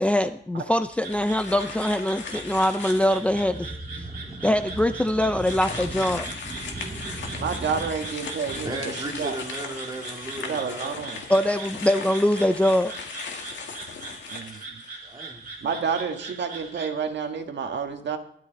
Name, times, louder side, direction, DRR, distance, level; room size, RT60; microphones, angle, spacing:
voice 1, 0.0-3.7 4.4-6.3 11.3-12.9, left 1 dB, 5° left, 0.5 m, -23 dB
sound 1, 0.9-3.4 4.0-4.1 5.3-15.1, left 5 dB, 75° left, 2.0 m, -38 dB
sound 2, 1.0-16.9, right 3 dB, 55° right, 3.7 m, -41 dB
voice 2, 3.3-7.9 8.5-11.1 14.4-14.7 15.0-15.7, right 2 dB, 20° right, 2.2 m, -37 dB
sound 3, 4.5-14.1, left 2 dB, 45° left, 6.9 m, -56 dB
voice 3, 7.4-8.7 9.2-9.4 10.5-11.2 14.3-14.8 15.6-18.2, right 6 dB, 70° right, 1.6 m, -29 dB
16.0 x 12.5 x 4.0 m
wide cardioid pair, 135°, 19 cm